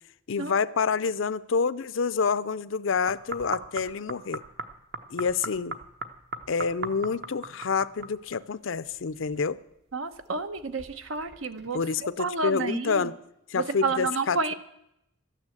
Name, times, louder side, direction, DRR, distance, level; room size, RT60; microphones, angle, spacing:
voice 1, 0.3-4.4 5.1-5.8 6.5-9.6 11.7-13.1 13.5-14.5, left 5 dB, 70° left, 16 dB, 0.5 m, -28 dB
sound 1, 3.1-8.5 8.8-9.8 10.1-12.0 12.6-12.7, right 3 dB, 55° right, 1.0 m, -39 dB
voice 2, 9.9-13.1 13.5-14.5, right 4 dB, 75° right, 10 dB, 1.0 m, -30 dB
13.5 x 9.9 x 7.8 m, 0.81 s
head